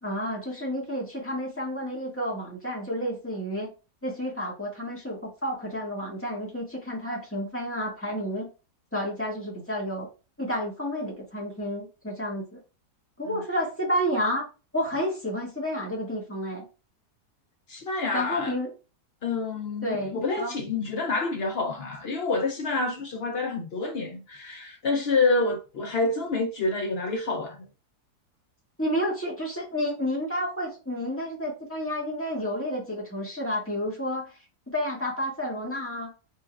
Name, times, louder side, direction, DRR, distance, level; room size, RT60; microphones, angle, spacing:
voice 1, 0.0-3.7 4.0-8.5 8.9-10.1 10.4-12.6 13.2-14.5 14.7-16.7 18.1-18.7 19.8-20.5 28.8-34.3 34.7-36.1, equal, 10° left, 1.6 m, -30 dB
voice 2, 17.7-18.6 19.2-27.7, left 3 dB, 75° left, 0.5 m, -28 dB
4.5 x 4.3 x 2.3 m
omnidirectional pair, 1.7 m